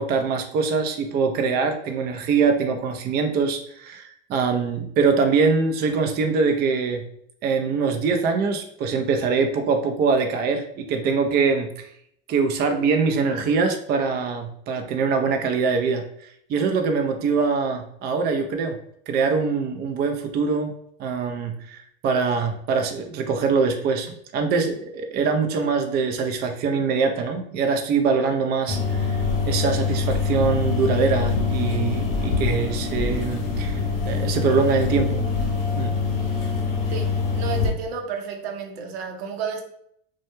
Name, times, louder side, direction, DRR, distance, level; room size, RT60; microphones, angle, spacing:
voice 1, 0.0-7.0 7.4-11.9 12.3-18.8 19.1-20.7 21.0-35.2 35.8-35.9, right 5 dB, 35° right, 0.4 m, -23 dB
sound 1, 28.7-37.7, left 5 dB, 60° left, 0.8 m, -24 dB
voice 2, 36.9-39.6, right 6 dB, 80° right, 0.6 m, -31 dB
2.2 x 2.1 x 2.9 m
hypercardioid pair, 95°, 30 cm